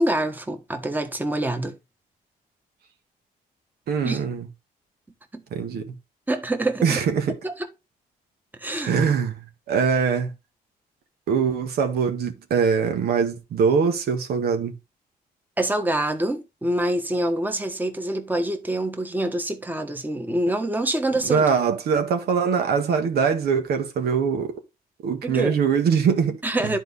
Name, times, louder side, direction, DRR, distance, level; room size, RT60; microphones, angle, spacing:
voice 1, 0.0-1.8 4.0-4.2 5.3-5.4 6.3-7.0 7.4-7.5 8.6-8.9 15.6-21.4 25.2-25.5 26.4-26.8, right 1 dB, 10° right, 1.3 m, -25 dB
voice 2, 3.9-4.5 5.5-6.0 6.8-7.4 8.8-9.4 9.7-10.3 11.3-14.7 21.2-24.6 25.0-26.7, right 6 dB, 80° right, 1.6 m, -22 dB
10.5 x 4.6 x 4.1 m
cardioid pair, 115°, 16 cm